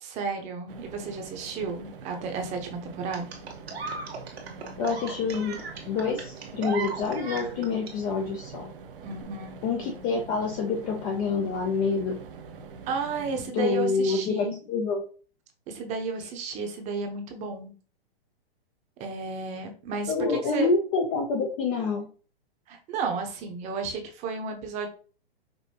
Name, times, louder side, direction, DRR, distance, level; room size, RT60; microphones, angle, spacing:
voice 1, 0.0-3.3 9.0-9.5 12.9-14.6 15.7-17.7 19.0-20.7 22.7-24.9, right 4 dB, 25° right, 4 dB, 0.8 m, -32 dB
sound 1, 0.7-13.5, right 4 dB, 60° right, 0.8 m, -44 dB
sound 2, 3.1-7.9 9.1-9.2, right 4 dB, 80° right, 1.4 m, -36 dB
voice 2, 4.8-8.7 9.6-12.2 13.5-15.0 20.1-22.1, left 4 dB, 20° left, 1 dB, 0.4 m, -27 dB
5.3 x 2.6 x 2.8 m, 0.39 s
hypercardioid pair, 140°, 30 cm